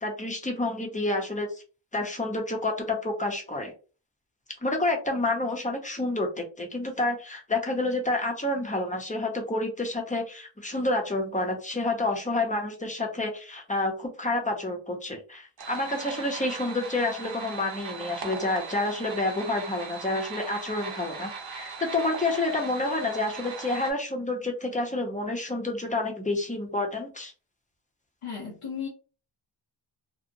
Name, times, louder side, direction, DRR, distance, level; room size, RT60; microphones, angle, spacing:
voice 1, 0.0-1.6 1.9-3.7 4.6-27.3, left 2 dB, 15° left, 1 dB, 0.6 m, -29 dB
sound 1, 15.6-23.9, right 5 dB, 55° right, 0.7 m, -39 dB
voice 2, 28.2-28.9, left 7 dB, 85° left, -3 dB, 0.9 m, -35 dB
2.8 x 2.1 x 2.6 m, 0.34 s
wide cardioid pair, 130°, 50 cm